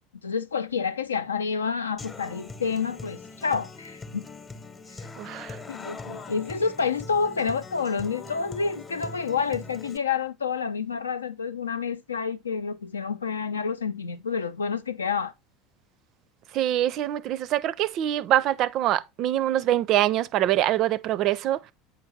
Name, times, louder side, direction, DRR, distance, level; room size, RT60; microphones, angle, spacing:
voice 1, 0.2-4.2 5.7-15.3, left 5 dB, 75° left, 0.4 m, -29 dB
Human voice / Acoustic guitar, 2.0-10.0, left 3 dB, 20° left, 0.9 m, -41 dB
voice 2, 5.2-5.6 16.5-21.6, right 13 dB, 45° right, 0.4 m, -24 dB
8.0 x 5.3 x 2.7 m
figure-of-eight pair, 75°, 0 cm